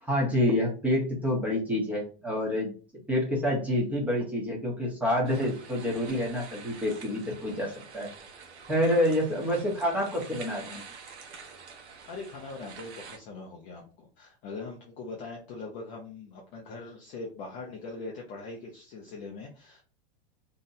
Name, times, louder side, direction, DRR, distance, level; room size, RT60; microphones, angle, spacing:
voice 1, 0.0-2.7 3.1-8.1 8.7-10.8, left 1 dB, 5° right, -3 dB, 0.7 m, -27 dB
sound 1, 5.2-13.2, right 5 dB, 80° right, 0.9 m, -47 dB
voice 2, 12.1-19.8, left 3 dB, 25° left, -2 dB, 0.4 m, -41 dB
2.7 x 2.1 x 3.8 m, 0.38 s
supercardioid pair, 150°, 33 cm